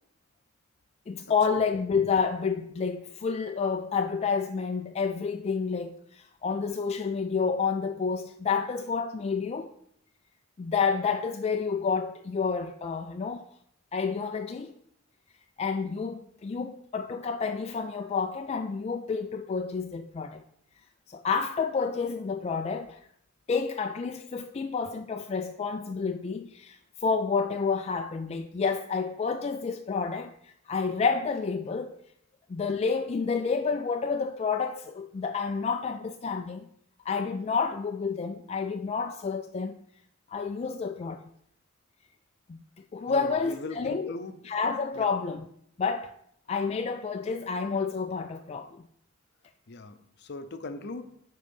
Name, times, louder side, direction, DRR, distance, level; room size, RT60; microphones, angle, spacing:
voice 1, 1.1-9.7 10.6-13.5 13.9-14.7 15.6-20.4 21.1-23.0 23.5-32.0 32.5-36.7 37.1-39.8 40.3-41.2 42.5-42.6 42.9-44.1 44.4-45.4 45.8-46.1 46.5-48.9, left 5 dB, 30° left, 0.3 m, -29 dB
voice 2, 43.1-44.4 44.9-45.1 49.7-51.1, left 3 dB, 55° left, 0.7 m, -39 dB
9.6 x 3.8 x 5.4 m
head